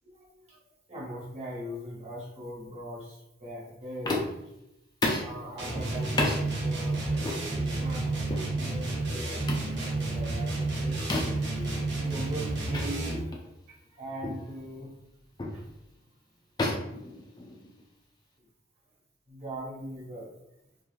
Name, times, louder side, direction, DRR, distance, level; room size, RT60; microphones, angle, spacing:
voice 1, 0.0-4.3 5.2-8.2 8.5-14.9 15.5-15.7 16.8-17.0 19.3-20.4, equal, 35° right, -6 dB, 1.2 m, -41 dB
sound 1, 4.0-4.5 5.0-5.4 6.2-6.4 7.2-7.4 8.3-8.5 9.5-9.7 11.1-11.5 12.7-12.9 13.3-13.5 14.2-14.5 15.4-15.6 16.6-17.8, left 2 dB, 20° left, 0.4 m, -31 dB
sound 2, 5.6-13.3, right 2 dB, 70° right, 0.8 m, -31 dB
3.0 x 2.4 x 2.3 m, 0.85 s
head